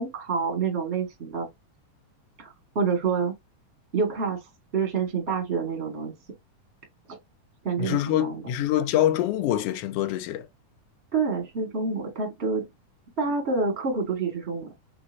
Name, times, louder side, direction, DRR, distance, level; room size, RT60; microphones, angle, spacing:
voice 1, 0.0-1.5 2.4-2.5 2.7-3.3 3.9-4.4 4.7-6.1 7.6-8.4 11.1-12.6 13.2-14.7, right 5 dB, 35° right, 1.1 m, -27 dB
voice 2, 7.8-10.5, left 12 dB, 85° left, 1.4 m, -25 dB
6.0 x 2.5 x 2.6 m
omnidirectional pair, 3.7 m